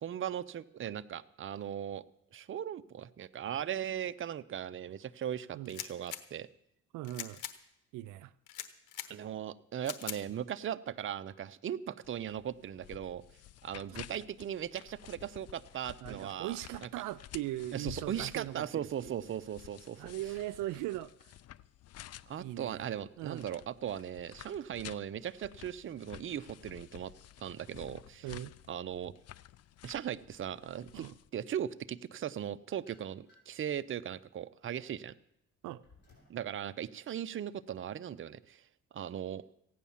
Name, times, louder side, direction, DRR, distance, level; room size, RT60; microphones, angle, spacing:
voice 1, 0.0-2.0 2.3-6.5 9.1-13.2 13.6-16.9 17.7-20.1 22.3-27.1 27.4-28.3 28.7-29.1 29.8-31.1 31.3-35.1 36.3-38.6 38.9-39.4, right 10 dB, 45° right, 13 dB, 0.6 m, -38 dB
sound 1, 5.6-6.2 7.0-7.5 8.5-9.1 9.8-10.2, left 11 dB, 85° left, 1.1 m, -41 dB
voice 2, 6.9-7.4 7.9-8.3 9.0-9.2 13.9-14.0 16.0-19.2 20.0-21.3 22.4-22.8 23.2-23.5 28.2-28.6 30.9-31.2 35.6-35.8, right 15 dB, 90° right, 16 dB, 0.5 m, -40 dB
sound 2, 12.0-31.3, left 13 dB, 55° left, 0.5 m, -52 dB
sound 3, 32.3-33.6 34.2-36.4, left 3 dB, 35° left, 5.8 m, -65 dB
15.5 x 9.3 x 7.2 m, 0.76 s
cardioid pair, 90°, 30 cm